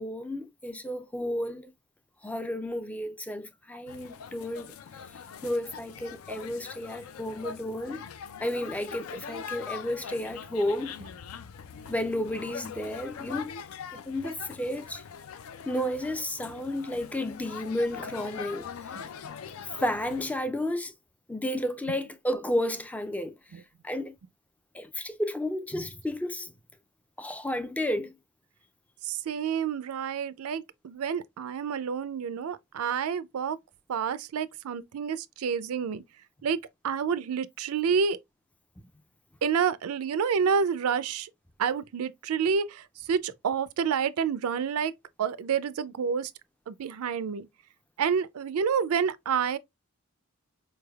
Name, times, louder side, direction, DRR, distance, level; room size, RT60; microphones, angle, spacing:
voice 1, 0.0-1.7 2.2-4.7 5.4-8.0 8.4-11.0 11.9-13.5 13.9-15.0 15.7-18.7 19.6-20.9 21.3-24.2 24.7-26.5 27.2-28.2, left 1 dB, 5° left, 0.3 m, -32 dB
sound 1, 3.9-20.3, left 7 dB, 75° left, 0.4 m, -42 dB
voice 2, 29.0-33.6 33.9-36.0 36.4-38.2 39.4-41.3 41.6-44.9 45.2-46.3 46.7-47.5 48.0-49.6, right 6 dB, 85° right, 0.4 m, -29 dB
4.6 x 3.3 x 2.2 m
head